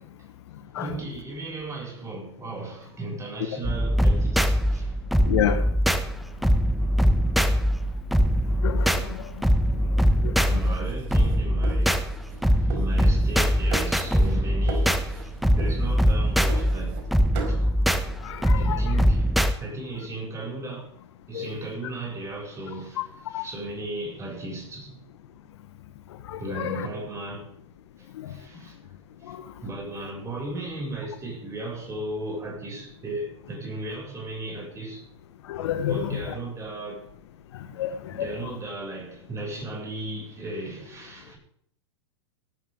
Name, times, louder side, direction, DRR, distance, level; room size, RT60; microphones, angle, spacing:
voice 1, 0.8-4.9 8.9-9.3 10.4-17.1 17.5-17.6 18.6-20.9 21.3-25.0 26.4-27.6 28.0-28.8 29.2-35.1 35.9-37.1 38.1-41.4, right 2 dB, 20° right, 7.6 m, -36 dB
sound 1, 3.6-19.5, equal, ahead, 1.2 m, -22 dB
voice 2, 5.3-5.6 8.6-8.9 10.2-10.3 18.2-18.8 21.3-21.5 23.3-23.4 26.3-26.9 29.3-29.4 35.5-36.2 37.8-37.9 38.2-38.3, left 10 dB, 65° left, 1.5 m, -28 dB
sound 2, 10.5-12.4 12.7-13.4 13.7-14.4 14.7-15.3 15.6-17.1 17.3-17.6, right 4 dB, 55° right, 4.6 m, -38 dB
18.5 x 12.5 x 4.0 m
hypercardioid pair, 110°, 15 cm